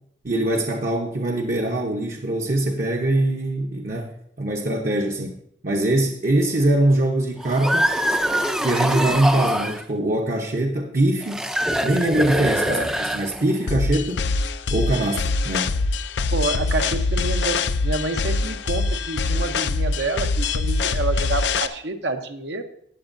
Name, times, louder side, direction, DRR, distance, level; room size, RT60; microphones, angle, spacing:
voice 1, 0.2-8.0 8.6-11.5 11.8-14.3 14.7-15.8, right 1 dB, 45° right, 1 dB, 0.9 m, -23 dB
sound 1, 7.4-9.8 11.2-13.7, equal, 5° right, 0.5 m, -24 dB
voice 2, 12.6-12.9 16.3-22.6, right 3 dB, 70° right, 6 dB, 0.9 m, -28 dB
sound 2, 13.7-21.7, left 3 dB, 75° left, 0.5 m, -23 dB
14.5 x 9.1 x 2.6 m, 0.68 s
head